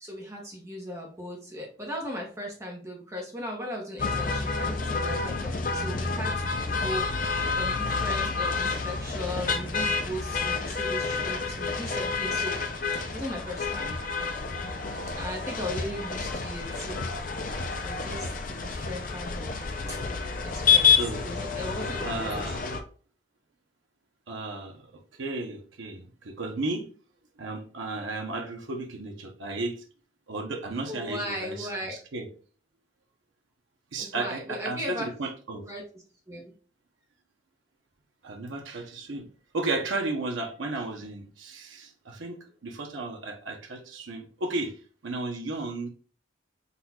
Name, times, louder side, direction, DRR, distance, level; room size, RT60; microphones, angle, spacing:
voice 1, 0.0-6.5 6.8-12.6 13.1-14.0 15.1-17.1 17.8-20.0 20.4-22.4 28.0-28.1 30.9-32.0 34.0-35.1 35.6-36.5, equal, 15° right, -1 dB, 0.8 m, -37 dB
sound 1, 4.0-22.8, left 5 dB, 45° left, 0.5 m, -29 dB
voice 2, 20.9-21.2 22.0-22.6 24.3-24.8 25.2-26.9 27.4-29.8 30.3-32.3 33.9-35.6 38.2-39.3 39.5-44.7 45.0-45.9, right 2 dB, 75° right, 3 dB, 0.7 m, -34 dB
4.1 x 2.3 x 4.1 m, 0.40 s
head